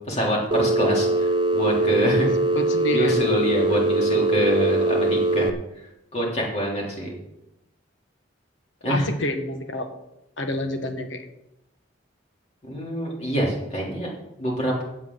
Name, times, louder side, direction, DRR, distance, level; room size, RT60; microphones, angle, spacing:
voice 1, 0.1-2.3 2.9-5.5 6.1-7.1 8.8-9.0 12.7-14.1 14.4-14.7, equal, 35° left, -2 dB, 3.6 m, -25 dB
Telephone, 0.5-5.5, right 2 dB, 25° right, 0.7 m, -22 dB
voice 2, 2.5-3.2 8.8-9.9 10.4-11.3, left 1 dB, 90° left, 6 dB, 1.6 m, -28 dB
16.0 x 8.6 x 4.0 m, 0.88 s
head